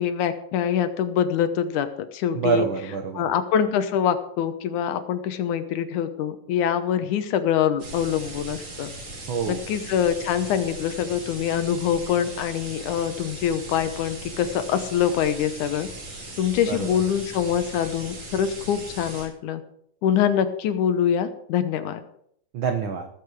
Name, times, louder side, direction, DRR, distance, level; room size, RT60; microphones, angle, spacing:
voice 1, 0.0-2.7 3.1-8.9 9.5-15.9 16.4-19.6 20.0-22.0, left 9 dB, 75° left, 10 dB, 2.3 m, -24 dB
voice 2, 2.3-3.3 9.3-9.6 16.7-17.0 22.5-23.1, right 5 dB, 80° right, 6 dB, 1.1 m, -26 dB
sound 1, 7.8-19.2, right 1 dB, 65° right, 6.2 m, -39 dB
19.0 x 7.9 x 4.8 m, 0.69 s
omnidirectional pair, 3.7 m